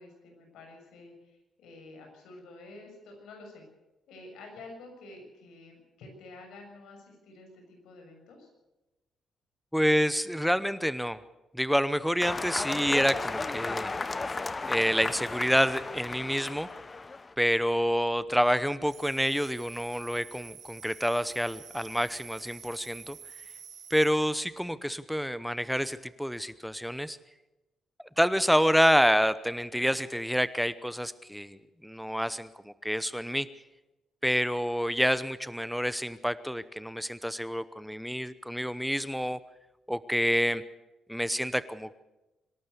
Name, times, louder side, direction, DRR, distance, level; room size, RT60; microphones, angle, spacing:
voice 1, 0.0-3.6 4.1-8.5, left 2 dB, 90° left, 2 dB, 7.0 m, -49 dB
voice 2, 9.7-11.2 11.5-13.9 14.6-16.7 17.4-23.2 23.9-27.2 28.2-33.5 34.2-39.4 39.9-40.6 41.1-42.0, equal, ahead, 14 dB, 0.8 m, -28 dB
sound 1, 12.2-17.3, left 3 dB, 25° left, 0.9 m, -34 dB
sound 2, 18.9-24.1, right 7 dB, 60° right, 5.1 m, -48 dB
25.5 x 12.5 x 8.2 m, 1.0 s
cardioid pair, 95°, 0 cm